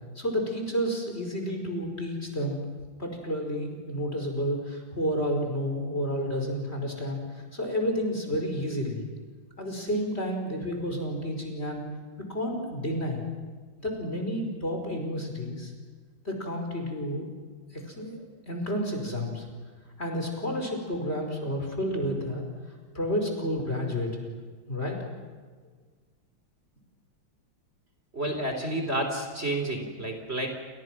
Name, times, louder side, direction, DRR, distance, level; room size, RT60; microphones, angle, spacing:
voice 1, 0.2-2.7 3.0-9.0 9.6-11.8 12.2-13.2 13.8-15.7 16.2-17.3 17.7-19.5 20.0-22.4 22.9-24.3 24.7-25.0, equal, 30° left, 2 dB, 5.5 m, -30 dB
voice 2, 28.1-30.5, right 1 dB, 30° right, 4 dB, 3.6 m, -30 dB
29.5 x 28.5 x 6.1 m, 1.5 s
omnidirectional pair, 2.2 m